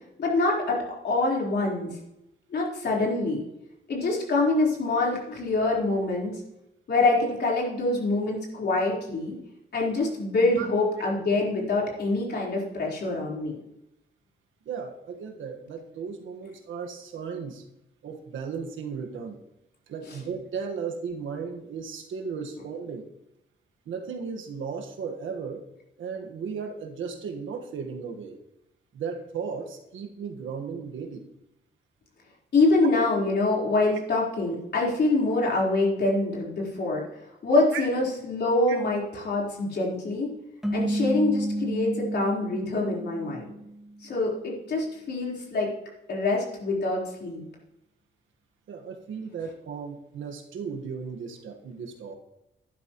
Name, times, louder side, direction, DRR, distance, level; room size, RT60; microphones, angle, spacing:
voice 1, 0.2-2.0 2.5-3.4 3.9-6.4 6.9-9.4 9.7-13.6 20.1-20.2 32.5-37.0 37.4-40.3 40.7-43.5 44.0-45.7 46.1-47.4, left 2 dB, 60° left, -3 dB, 4.1 m, -25 dB
voice 2, 14.6-17.6 18.0-19.4 19.9-23.1 23.8-25.6 26.0-28.4 28.9-31.3 37.7-37.8 38.7-38.8 48.7-52.1, right 6 dB, 85° right, 3 dB, 1.5 m, -35 dB
sound 1, 40.6-44.0, right 1 dB, ahead, 1.7 m, -31 dB
11.5 x 11.5 x 3.1 m, 0.85 s
cardioid pair, 110°, 19 cm